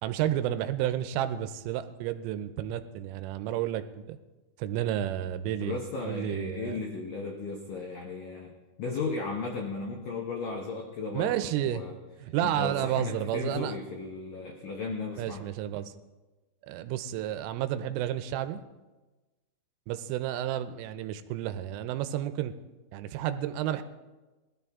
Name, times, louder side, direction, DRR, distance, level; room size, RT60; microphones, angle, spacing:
voice 1, 0.0-4.2 4.6-5.8 6.1-6.8 11.1-11.8 12.2-13.8 15.2-16.0 16.6-18.6 19.9-22.5 22.9-23.8, right 11 dB, 85° right, 11 dB, 3.2 m, -31 dB
voice 2, 5.6-8.5 8.8-12.0 12.4-15.4, left 3 dB, 90° left, 1 dB, 1.9 m, -35 dB
20.0 x 13.0 x 3.6 m, 1.2 s
omnidirectional pair, 5.7 m